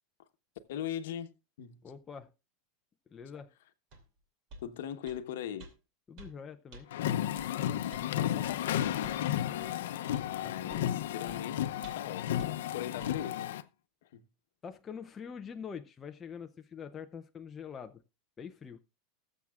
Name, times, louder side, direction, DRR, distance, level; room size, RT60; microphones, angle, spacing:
voice 1, 0.7-1.8 4.6-5.7 7.9-11.7 11.9-13.5 14.0-14.2, left 10 dB, 70° left, 1.0 m, -41 dB
voice 2, 1.8-2.3 3.1-3.5 6.1-6.9 10.4-10.9 14.6-18.0 18.4-18.8, left 6 dB, 15° left, 0.5 m, -45 dB
sound 1, 3.9-4.0 4.5-4.7 5.1-5.2 5.6-5.7 6.2-6.3 6.7-6.8 7.4-7.5 7.9-8.1 8.4-8.6 9.0-9.2 9.6-9.7 10.1-10.3 10.7-10.9 11.3-11.4 11.8-12.1 12.4-12.5 13.0-13.1, right 2 dB, 35° right, 2.5 m, -50 dB
sound 2, 6.9-13.6, left 11 dB, 85° left, 0.6 m, -33 dB
20.0 x 7.2 x 2.4 m
supercardioid pair, 180°, 0 cm